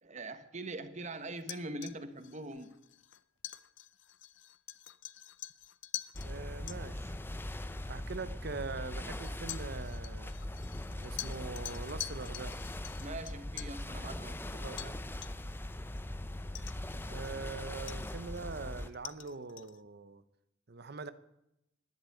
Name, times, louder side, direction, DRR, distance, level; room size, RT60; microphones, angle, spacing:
voice 1, 0.0-2.8 13.0-14.4, right 2 dB, 40° right, 1.2 m, -42 dB
sound 1, 1.4-6.3 6.7-6.8 7.8-7.9 9.2-13.8 14.8-15.0 15.2-15.6 16.0-16.1 16.6-17.5 17.9-19.8, left 14 dB, 70° left, 0.6 m, -46 dB
sound 2, 6.1-18.9, left 1 dB, 10° left, 0.7 m, -41 dB
voice 2, 6.2-7.1 7.9-10.3 11.0-12.6 14.5-15.0 17.1-20.2 20.7-21.1, right 4 dB, 55° right, 0.8 m, -43 dB
11.5 x 10.5 x 9.2 m
head